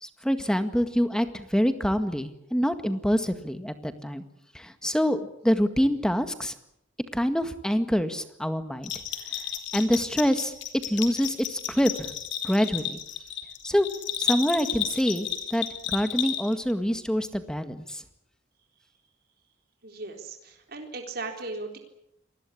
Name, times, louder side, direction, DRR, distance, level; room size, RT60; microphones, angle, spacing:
voice 1, 0.0-4.2 4.5-6.5 7.1-8.9 9.7-10.5 10.9-12.1 12.4-13.0 13.6-13.9 14.2-18.0, equal, 5° left, 9 dB, 1.8 m, -26 dB
Bell, 8.8-16.7, left 10 dB, 65° left, 3.7 m, -32 dB
voice 2, 19.8-21.8, right 3 dB, 55° right, 3 dB, 3.9 m, -37 dB
27.0 x 20.5 x 8.6 m, 0.76 s
head